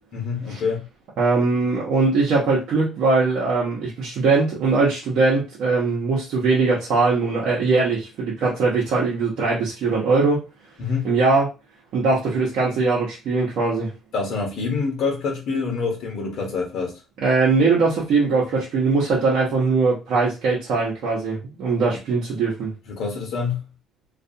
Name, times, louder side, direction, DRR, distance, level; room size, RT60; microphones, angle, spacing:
voice 1, 0.1-0.8 10.8-11.1 14.1-17.0 22.9-23.6, left 4 dB, 70° left, 0.9 m, -26 dB
voice 2, 1.2-10.4 11.0-11.5 11.9-13.9 17.2-22.7, right 3 dB, 70° right, 0.8 m, -21 dB
2.4 x 2.3 x 2.6 m
supercardioid pair, 80°, 0 cm